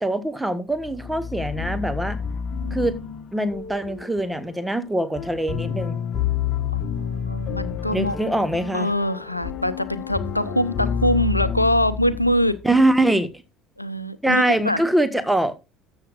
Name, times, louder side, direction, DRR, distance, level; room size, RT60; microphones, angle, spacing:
voice 1, 0.0-2.2 2.7-2.9 3.3-6.0 7.9-8.9 12.6-13.3 14.2-15.5, right 1 dB, 5° right, 1.4 m, -23 dB
sound 1, 0.8-12.8, left 7 dB, 45° left, 1.2 m, -29 dB
voice 2, 6.7-8.2 8.7-12.6 13.8-14.8, equal, 90° left, 0.6 m, -23 dB
13.0 x 7.8 x 2.5 m
figure-of-eight pair, 60°, 0 cm